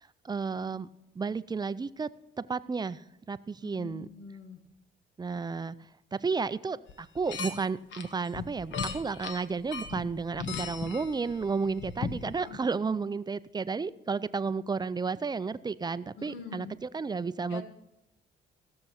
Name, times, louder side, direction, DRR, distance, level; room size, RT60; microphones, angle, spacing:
voice 1, 0.2-0.9 1.2-2.1 2.5-3.0 3.3-4.1 5.2-5.7 6.2-17.6, right 4 dB, 20° right, 15 dB, 0.5 m, -32 dB
voice 2, 3.6-4.6 12.3-12.6 16.1-16.7 17.5-17.6, left 4 dB, 90° left, 5 dB, 1.6 m, -44 dB
sound 1, 6.9-7.6 7.9-12.4, left 5 dB, 65° left, 1.2 m, -37 dB
16.0 x 6.6 x 5.7 m, 0.88 s
cardioid pair, 90°, 20 cm